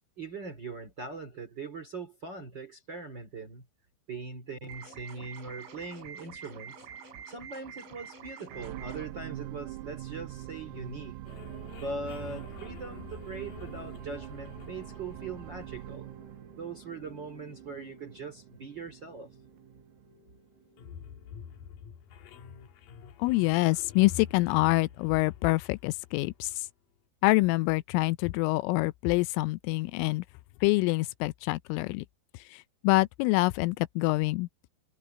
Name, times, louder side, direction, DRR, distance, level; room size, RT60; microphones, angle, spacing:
voice 1, 0.2-3.7 4.1-6.8 7.3-11.2 11.8-16.1 16.5-19.3, right 3 dB, 30° right, 2.1 m, -41 dB
sound 1, 4.7-9.1, right 6 dB, 70° right, 7.1 m, -46 dB
sound 2, 8.5-20.9 21.5-21.6, right 15 dB, 90° right, 3.6 m, -44 dB
sound 3, 11.2-26.7, left 8 dB, 60° left, 2.4 m, -49 dB
voice 2, 23.2-26.7 27.2-30.2 30.6-32.0 32.5-34.5, left 21 dB, 85° left, 3.1 m, -26 dB
omnidirectional pair, 5.9 m